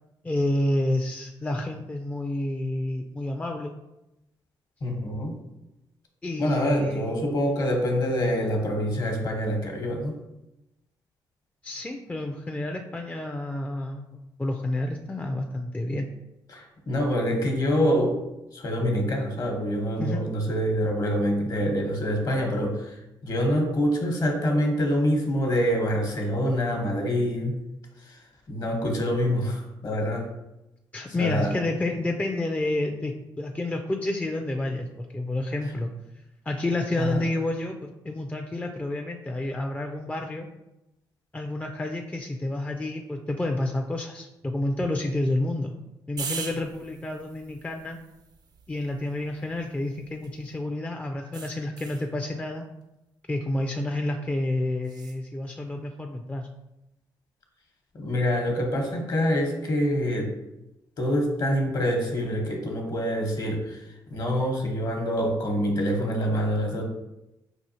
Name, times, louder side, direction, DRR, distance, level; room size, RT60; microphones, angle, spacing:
voice 1, 0.2-3.7 6.2-7.0 11.6-16.0 20.0-20.2 30.9-35.9 36.5-40.5 41.3-45.7 46.1-48.0 48.7-52.7 53.3-56.5, left 1 dB, 15° left, 3 dB, 0.4 m, -29 dB
voice 2, 4.8-5.4 6.4-10.2 16.5-18.2 18.5-27.6 28.0-30.3 31.2-31.6 36.9-37.3 57.9-60.3 61.0-66.8, equal, 50° left, 2 dB, 1.0 m, -26 dB
sound 1, 46.2-50.6 51.3-52.1 54.8-55.2, right 5 dB, 50° right, 0.4 m, -41 dB
4.8 x 2.4 x 2.8 m, 0.92 s
supercardioid pair, 55°, 9 cm